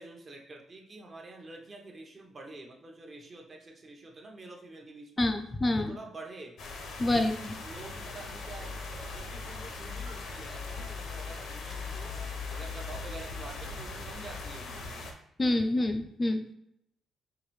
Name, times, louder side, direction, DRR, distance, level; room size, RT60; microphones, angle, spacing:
voice 1, 0.0-5.3 5.8-6.6 7.2-12.1 12.5-15.0, right 2 dB, 35° right, 1 dB, 0.9 m, -47 dB
voice 2, 5.2-6.0 7.0-7.5 15.4-16.5, left 1 dB, 25° left, 6 dB, 0.3 m, -27 dB
sound 1, 6.6-15.1, left 4 dB, 70° left, 0.7 m, -39 dB
4.8 x 2.5 x 3.1 m, 0.75 s
cardioid pair, 90°, 0 cm